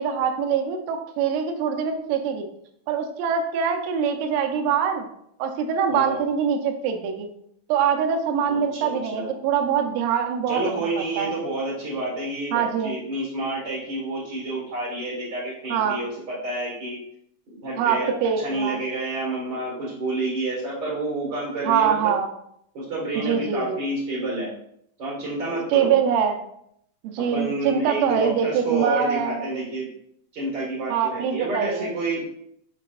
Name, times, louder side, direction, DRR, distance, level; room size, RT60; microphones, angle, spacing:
voice 1, 0.0-2.5 2.9-5.1 5.4-7.3 7.7-10.6 11.2-11.3 12.5-12.9 15.7-16.0 17.8-18.8 21.7-22.3 23.2-23.8 25.7-26.4 27.0-29.5 30.9-31.9, right 7 dB, 85° right, 4 dB, 3.3 m, -24 dB
voice 2, 5.9-6.2 8.4-9.4 10.5-17.0 17.5-22.1 22.7-24.5 25.0-25.9 27.2-29.9 30.3-32.3, right 2 dB, 70° right, -5 dB, 1.0 m, -29 dB
8.8 x 4.3 x 2.4 m, 0.72 s
omnidirectional pair, 5.6 m